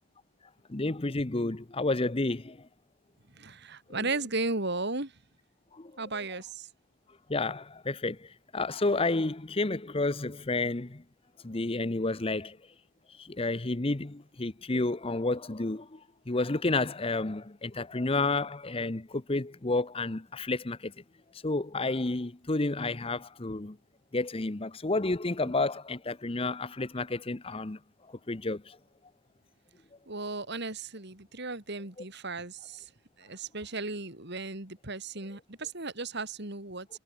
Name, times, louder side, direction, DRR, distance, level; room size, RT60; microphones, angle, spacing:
voice 1, 0.7-2.6 5.7-5.9 7.3-11.0 11.4-12.6 13.2-16.0 16.3-20.9 21.4-23.8 24.1-27.8 28.3-28.8, left 2 dB, 25° left, 0.8 m, -30 dB
voice 2, 3.3-5.1 6.0-6.7 25.4-25.5 30.1-32.8 33.2-36.9, right 3 dB, 55° right, 3.4 m, -35 dB
head